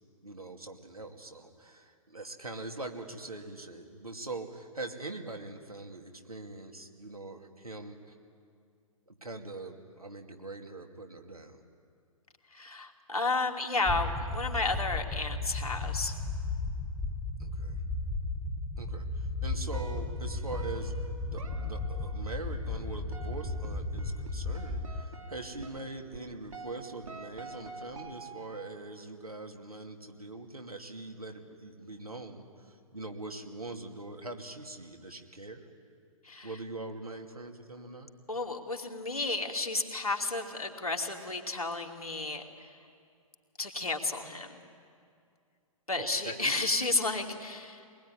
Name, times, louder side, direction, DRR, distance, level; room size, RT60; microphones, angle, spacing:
voice 1, 0.2-8.1 9.1-11.6 17.4-17.8 18.8-32.4 32.9-35.7 36.4-38.1 46.0-46.5, right 2 dB, 85° right, 3 dB, 2.7 m, -43 dB
voice 2, 12.5-16.1 36.2-36.5 38.3-42.4 43.6-44.6 45.9-47.9, left 3 dB, 85° left, 2 dB, 2.8 m, -32 dB
sound 1, 13.9-25.0, left 2 dB, 5° left, 1.1 m, -35 dB
sound 2, 19.7-28.7, right 3 dB, 65° right, 2.9 m, -47 dB
23.5 x 20.5 x 9.9 m, 2.3 s
figure-of-eight pair, 120°, 18 cm